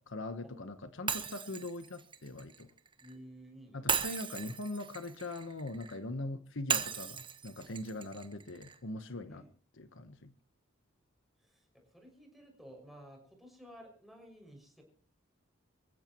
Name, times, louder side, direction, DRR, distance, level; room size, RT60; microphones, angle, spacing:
voice 1, 0.0-2.7 3.7-9.4 9.8-10.3, left 2 dB, 65° left, 10 dB, 1.2 m, -41 dB
Shatter, 1.1-3.1 3.9-6.0 6.7-8.8, right 6 dB, 25° right, 1.2 m, -37 dB
voice 2, 3.0-3.8 9.3-9.5 11.4-14.8, equal, ahead, 2 dB, 6.3 m, -54 dB
27.0 x 15.5 x 3.1 m, 0.40 s
head